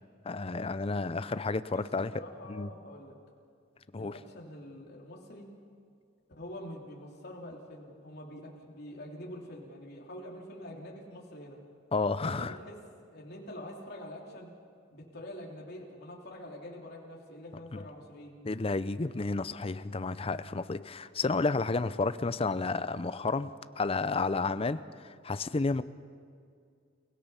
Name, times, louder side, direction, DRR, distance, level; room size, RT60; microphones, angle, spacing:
voice 1, 0.2-2.1 2.5-2.7 3.9-4.1 11.9-12.5 17.7-17.8 18.4-25.8, left 3 dB, 30° left, 14 dB, 0.5 m, -31 dB
voice 2, 2.1-3.2 3.9-5.5 6.4-11.6 12.2-12.7 13.1-14.5 14.9-18.3, left 1 dB, 55° left, -2 dB, 3.2 m, -45 dB
29.5 x 17.0 x 5.7 m, 2.3 s
head